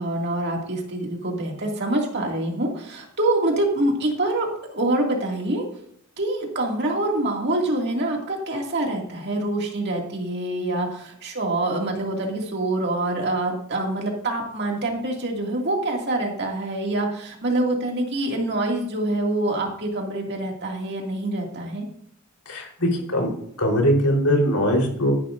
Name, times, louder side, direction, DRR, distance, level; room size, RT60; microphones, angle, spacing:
voice 1, 0.0-5.6 6.2-21.9, right 1 dB, 50° right, 0 dB, 2.3 m, -25 dB
voice 2, 22.5-23.3 23.6-25.1, equal, 90° left, 0 dB, 4.0 m, -21 dB
13.5 x 11.0 x 2.6 m, 0.66 s
head